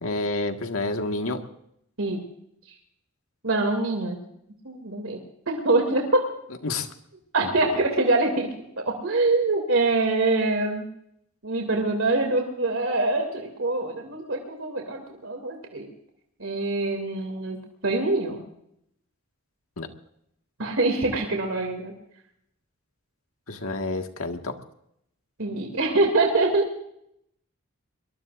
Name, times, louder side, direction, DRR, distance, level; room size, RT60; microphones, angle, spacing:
voice 1, 0.0-1.4 6.6-6.9 7.4-7.9 19.8-19.9 23.5-24.5, left 2 dB, 80° left, 5 dB, 1.8 m, -29 dB
voice 2, 3.4-4.2 4.6-5.2 5.5-6.2 7.3-8.5 8.8-10.8 11.4-15.9 16.4-17.6 17.8-18.4 20.6-21.9 25.4-26.8, right 2 dB, 70° right, 2 dB, 2.7 m, -24 dB
23.5 x 21.5 x 2.6 m, 0.75 s
head